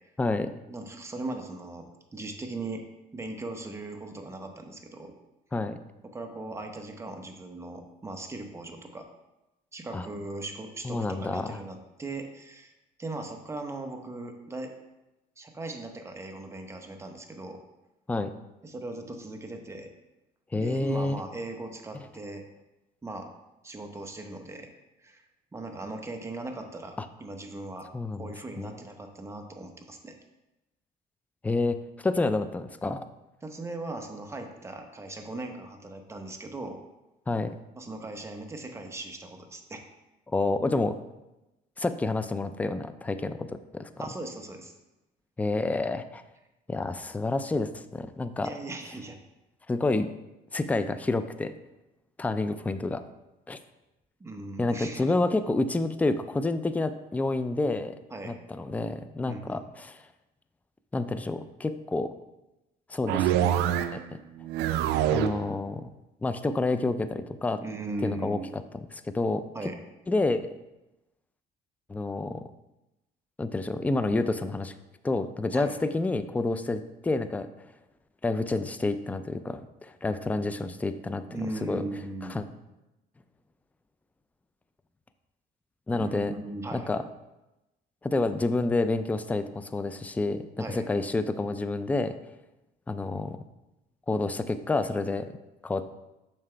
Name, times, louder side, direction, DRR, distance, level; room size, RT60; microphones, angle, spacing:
voice 1, 0.2-0.5 5.5-5.8 9.9-10.0 10.8-11.6 18.1-18.3 20.5-21.2 27.0-27.1 27.9-28.7 31.4-31.8 32.0-33.0 37.3-37.5 40.3-40.9 41.8-43.9 45.4-46.2 46.7-48.5 49.7-50.1 50.5-51.5 52.2-53.0 53.5-53.6 54.6-57.9 58.3-60.0 60.9-62.1 62.9-63.6 63.9-64.0 65.1-65.9 66.2-67.6 68.0-68.6 68.9-69.4 70.1-70.5 71.9-72.4 73.4-74.7 75.0-77.5 78.2-81.2 81.6-81.8 82.3-82.4 85.9-86.3 86.7-87.0 88.0-90.4 90.7-92.1 92.9-93.4 94.1-95.3 95.6-95.9, left 2 dB, 10° left, 11 dB, 0.3 m, -29 dB
voice 2, 0.7-2.8 3.1-5.1 6.1-9.1 9.7-12.7 13.0-14.7 15.4-17.6 18.6-19.9 20.5-22.4 23.0-23.3 23.6-24.7 25.0-25.2 25.5-27.9 28.2-30.1 33.4-36.8 37.7-39.8 44.0-44.7 48.4-49.2 54.2-55.1 58.1-58.4 59.3-59.6 67.6-68.5 69.5-69.8 75.5-75.8 81.3-82.4 85.9-86.9 90.6-90.8, right 2 dB, 15° right, 4 dB, 0.9 m, -38 dB
sound 1, 63.1-64.1 64.4-65.5, right 11 dB, 85° right, 0.4 m, -25 dB
7.4 x 5.7 x 3.3 m, 0.97 s
cardioid pair, 110°, 17 cm